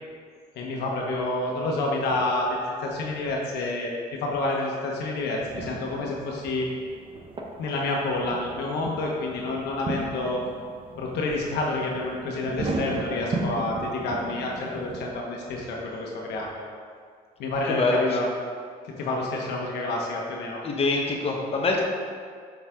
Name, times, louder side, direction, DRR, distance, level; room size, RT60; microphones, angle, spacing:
voice 1, 0.6-3.9 4.2-6.7 7.6-10.4 11.0-16.5 17.4-18.3 19.0-20.6, left 2 dB, 80° left, -2 dB, 1.3 m, -28 dB
sound 1, 5.4-15.1, right 2 dB, 30° right, 0.9 m, -36 dB
voice 2, 17.7-18.2 20.6-21.8, left 3 dB, 35° left, 0 dB, 1.3 m, -24 dB
7.3 x 6.5 x 3.7 m, 2.1 s
cardioid pair, 110°, 17 cm